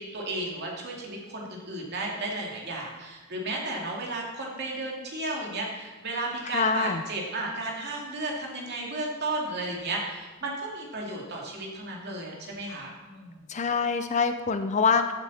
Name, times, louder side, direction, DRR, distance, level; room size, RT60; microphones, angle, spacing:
voice 1, 0.0-13.4, right 2 dB, 50° right, -2 dB, 2.6 m, -34 dB
voice 2, 6.5-7.0 13.5-15.1, left 5 dB, 35° left, 9 dB, 0.5 m, -25 dB
15.5 x 8.5 x 4.3 m, 1.3 s
head